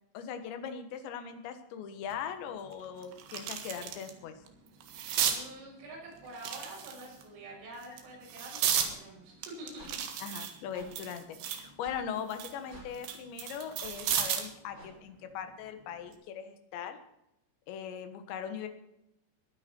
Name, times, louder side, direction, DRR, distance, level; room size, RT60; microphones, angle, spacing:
voice 1, 0.1-4.4 10.2-17.0 17.7-18.7, left 8 dB, 70° left, 8 dB, 3.4 m, -40 dB
sound 1, 2.1-2.2 2.7-4.1 4.5-5.4 6.3-7.2 7.8-8.9 9.4-11.7 12.1-14.6 15.9-16.1, right 9 dB, 65° right, 3.6 m, -34 dB
voice 2, 5.3-10.0, right 1 dB, 85° right, -3 dB, 9.1 m, -47 dB
sound 2, 8.7-8.9 9.7-9.9 10.7-10.9 11.8-12.0 12.7-12.9 13.8-13.9 14.7-14.9, right 1 dB, 15° right, 6.7 m, -49 dB
21.5 x 9.9 x 4.4 m, 0.83 s
omnidirectional pair, 5.8 m